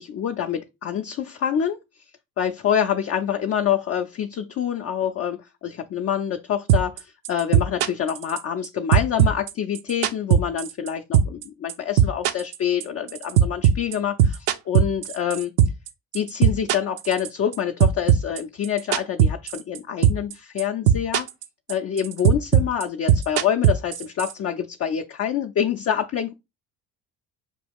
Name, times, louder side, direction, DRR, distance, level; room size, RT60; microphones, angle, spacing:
voice 1, 0.0-1.8 2.4-15.5 16.1-21.3 21.7-26.3, left 9 dB, 35° left, 0.5 m, -26 dB
sound 1, 6.7-7.0 7.2-8.7 8.9-10.9 11.1-11.4 11.7-15.9 16.1-17.5 17.8-19.8 20.0-20.3 20.6-21.4 21.7-24.3, right 9 dB, 75° right, 0.6 m, -18 dB
6.0 x 2.3 x 3.4 m
supercardioid pair, 85°, 42 cm